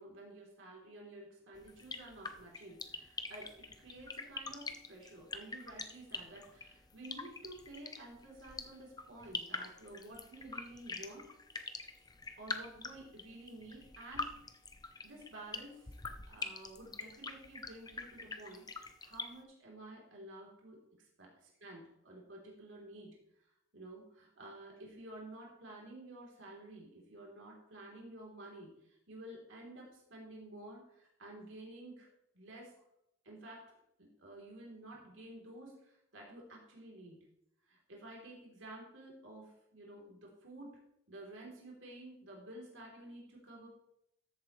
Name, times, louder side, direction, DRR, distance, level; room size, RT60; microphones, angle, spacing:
voice 1, 0.0-11.2 12.4-14.3 15.0-16.0 16.3-20.8 21.2-23.1 23.7-28.7 29.1-32.1 32.3-32.7 33.2-33.7 34.0-37.2 37.7-40.8 41.1-43.7, right 1 dB, 70° right, -2 dB, 3.4 m, -51 dB
sound 1, 1.5-19.3, left 4 dB, 20° left, 0.7 m, -44 dB
13.5 x 8.2 x 3.2 m, 0.78 s
head